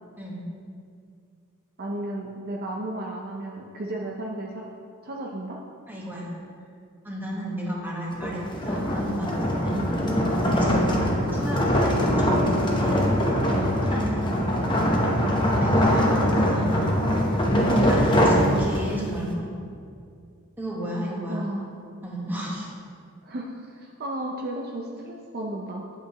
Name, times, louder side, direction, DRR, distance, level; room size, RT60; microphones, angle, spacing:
voice 1, 1.8-4.7 5.0-5.6 9.7-9.9 12.1-12.3 13.5-13.7 15.2-15.4 18.5-18.8 21.3-21.8 23.2-25.9, right 1 dB, 45° right, -1 dB, 0.6 m, -34 dB
voice 2, 5.9-6.3 7.0-9.8 10.4-13.0 13.8-14.3 15.6-16.9 17.9-19.5 20.6-21.4 22.0-22.7, equal, 10° right, -4 dB, 1.4 m, -33 dB
sound 1, 8.1-19.1, equal, 20° left, 0.9 m, -22 dB
9.1 x 8.1 x 3.0 m, 2.3 s
head